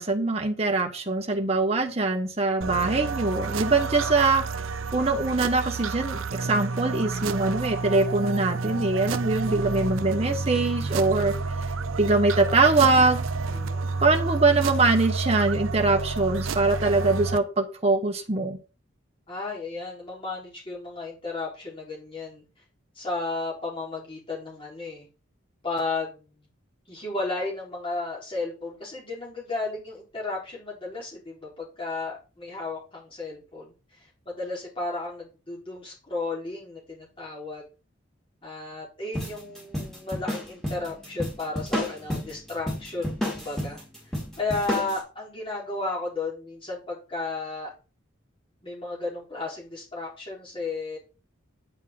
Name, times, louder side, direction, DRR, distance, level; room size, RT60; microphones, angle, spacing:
voice 1, 0.0-4.4 4.9-11.3 12.0-13.2 14.0-18.6, right 3 dB, 30° right, 3 dB, 1.1 m, -23 dB
sound 1, 2.6-17.4, right 4 dB, 80° right, 0.6 m, -30 dB
voice 2, 13.4-14.0 19.3-22.4 23.0-25.1 25.6-26.4 26.9-33.7 34.3-37.6 38.4-47.7 48.6-51.0, left 3 dB, 25° left, -3 dB, 4.0 m, -33 dB
surf-quiet-loop, 39.1-45.0, equal, ahead, 4.3 m, -31 dB
9.0 x 8.3 x 3.8 m, 0.33 s
head